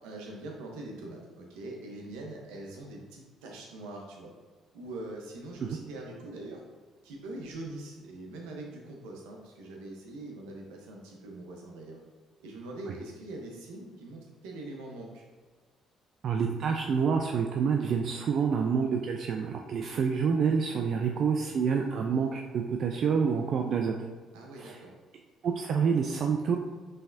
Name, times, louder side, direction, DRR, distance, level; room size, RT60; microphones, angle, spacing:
voice 1, 0.0-4.3 4.7-6.6 7.0-12.0 12.4-15.2 24.3-24.9, right 2 dB, 85° right, 0 dB, 0.8 m, -43 dB
voice 2, 16.2-23.9 24.6-24.8 25.4-26.6, right 6 dB, 60° right, 3 dB, 0.3 m, -27 dB
5.5 x 3.3 x 2.6 m, 1.4 s
supercardioid pair, 60°, 0 cm